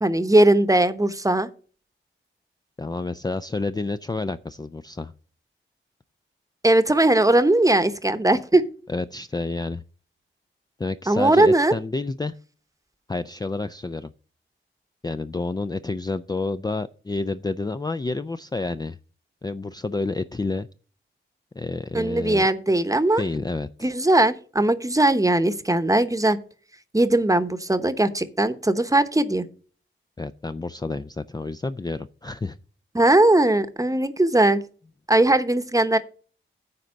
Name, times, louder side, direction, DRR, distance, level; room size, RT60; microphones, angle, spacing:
voice 1, 0.0-1.5 6.6-8.6 11.1-11.7 21.9-23.2 23.8-26.4 26.9-29.5 32.9-34.6 35.1-36.0, right 1 dB, 15° right, 11 dB, 0.9 m, -19 dB
voice 2, 2.8-5.1 8.9-9.8 10.8-12.4 13.1-14.1 15.0-19.0 19.4-20.7 21.6-22.5 23.2-23.9 30.2-32.6, left 3 dB, 20° left, 11 dB, 0.4 m, -29 dB
9.6 x 4.0 x 7.4 m, 0.40 s
cardioid pair, 60°, 21 cm